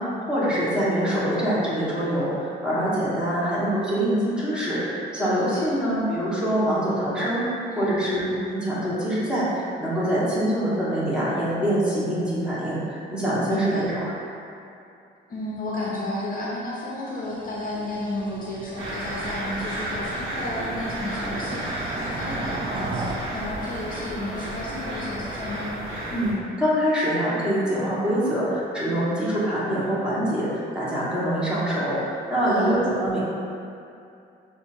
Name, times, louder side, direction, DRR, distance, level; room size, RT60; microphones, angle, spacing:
voice 1, 0.0-7.5 7.8-14.1 26.1-26.3 26.6-33.2, equal, 5° right, -10 dB, 1.4 m, -24 dB
voice 2, 5.4-5.7 7.7-8.0 13.5-13.8 15.3-25.7 32.4-32.7, left 1 dB, 45° left, -5 dB, 0.7 m, -32 dB
sound 1, 17.3-23.2, right 3 dB, 25° right, 0.3 m, -36 dB
sound 2, 18.8-26.3, right 1 dB, 75° right, 1.1 m, -32 dB
6.1 x 2.6 x 2.6 m, 2.6 s
cardioid pair, 90°, 20 cm